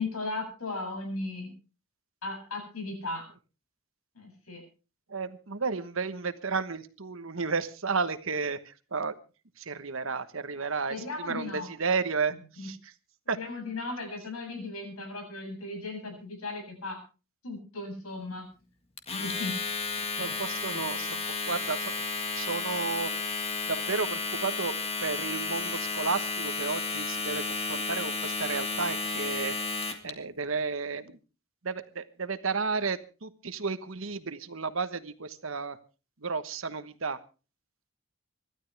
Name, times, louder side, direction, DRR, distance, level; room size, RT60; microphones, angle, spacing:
voice 1, 0.0-1.5 2.2-3.3 4.1-4.6 10.9-11.7 12.6-12.7 13.3-17.0 17.4-18.4 19.1-19.5 20.2-21.2, left 3 dB, 90° left, 4 dB, 7.8 m, -37 dB
voice 2, 5.1-9.1 9.6-12.9 13.3-13.4 20.2-21.9 22.3-23.1 23.7-24.7 25.0-29.5 30.0-31.2 31.6-35.8 36.2-37.2, right 4 dB, 65° right, 12 dB, 1.2 m, -32 dB
Domestic sounds home sounds, 19.0-30.1, left 4 dB, 30° left, 1.8 m, -32 dB
26.0 x 12.5 x 3.4 m, 0.35 s
head